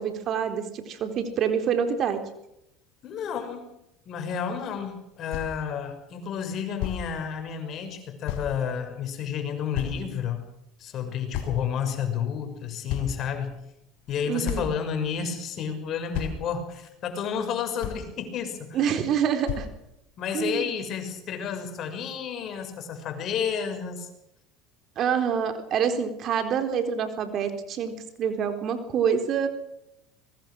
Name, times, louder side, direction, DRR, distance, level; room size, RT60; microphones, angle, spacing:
voice 1, 0.0-2.2 14.3-14.7 18.7-19.7 20.3-20.7 25.0-29.5, right 7 dB, 50° right, 7 dB, 4.1 m, -26 dB
voice 2, 3.0-3.7 4.1-10.4 10.8-13.5 14.1-18.9 20.2-24.1, left 7 dB, 50° left, 6 dB, 6.3 m, -31 dB
sound 1, 5.0-5.1 5.3-5.5 6.4-6.5 6.8-7.0 8.3-8.5 9.2-9.3 9.7-10.3 11.3-11.9 12.4-12.6 12.9-13.5 14.1-14.2 14.4-14.8 15.7-15.8 16.1-16.4 17.4-17.5 17.8-18.1 19.1-19.2 19.5-19.7, left 10 dB, 70° left, 4.9 m, -32 dB
24.0 x 21.0 x 6.4 m, 0.82 s
hypercardioid pair, 85°, 0 cm